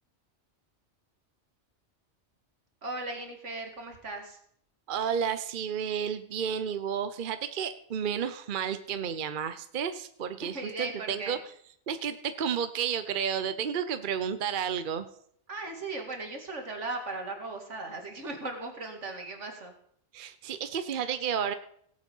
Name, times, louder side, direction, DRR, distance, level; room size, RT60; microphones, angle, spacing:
voice 1, 2.8-4.4 10.4-11.4 15.5-19.7, right 2 dB, 85° right, 3 dB, 2.6 m, -37 dB
voice 2, 4.9-11.4 11.9-15.1 20.1-21.5, right 7 dB, 50° right, 11 dB, 0.9 m, -31 dB
17.0 x 7.7 x 5.4 m, 0.65 s
omnidirectional pair, 1.2 m